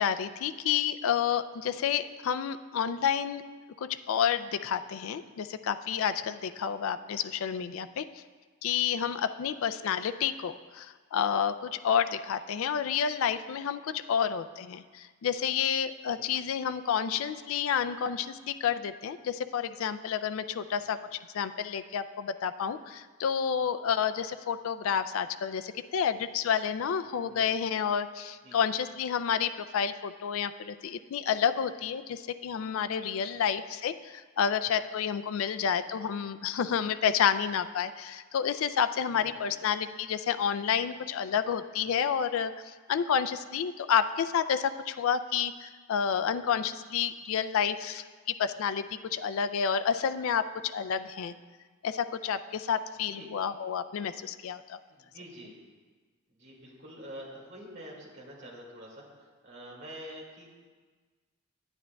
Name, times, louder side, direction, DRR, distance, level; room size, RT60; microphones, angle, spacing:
voice 1, 0.0-3.4 4.1-8.0 8.6-42.5 42.9-48.0 48.4-51.3 51.8-54.8, left 8 dB, 65° left, 12 dB, 0.3 m, -30 dB
voice 2, 16.1-16.4 20.8-21.0 27.3-27.5 28.4-28.6 33.3-33.5 35.6-35.7 39.1-39.6 53.1-53.3 54.9-55.6 56.3-60.5, equal, 55° right, -4 dB, 2.1 m, -47 dB
9.8 x 9.5 x 2.3 m, 1.4 s
head